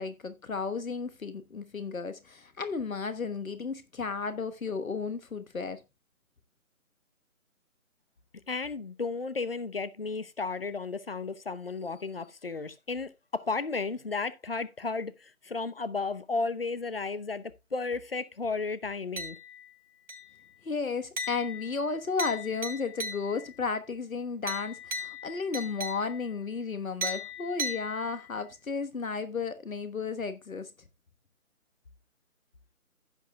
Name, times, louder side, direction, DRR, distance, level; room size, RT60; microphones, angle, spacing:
voice 1, 0.0-5.8 20.6-30.7, left 5 dB, 70° left, 1.3 m, -33 dB
voice 2, 8.5-19.4, left 4 dB, 40° left, 0.8 m, -33 dB
sound 1, 19.2-19.7 20.1-20.5 21.2-23.6 24.5-26.4 27.0-28.4, equal, 75° right, 3.5 m, -38 dB
15.5 x 7.5 x 2.3 m
figure-of-eight pair, 165°, 43 cm